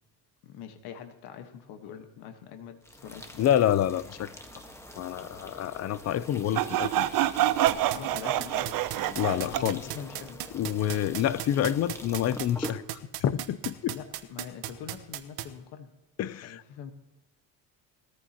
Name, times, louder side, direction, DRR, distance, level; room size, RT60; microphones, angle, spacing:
voice 1, 0.4-3.5 7.9-10.4 13.9-15.9 16.4-16.9, left 8 dB, 80° left, 6 dB, 1.4 m, -44 dB
sound 1, 2.8-12.8, left 1 dB, 5° left, 1.3 m, -45 dB
voice 2, 3.4-4.3 5.0-7.1 9.2-9.8 10.5-14.0 16.2-16.6, left 11 dB, 45° left, 17 dB, 0.6 m, -28 dB
Sawing, 6.6-9.8, right 13 dB, 60° right, 0.7 m, -26 dB
sound 2, 7.7-15.4, right 14 dB, 90° right, 1.1 m, -35 dB
19.5 x 14.0 x 2.9 m, 1.1 s
cardioid pair, 145°, 38 cm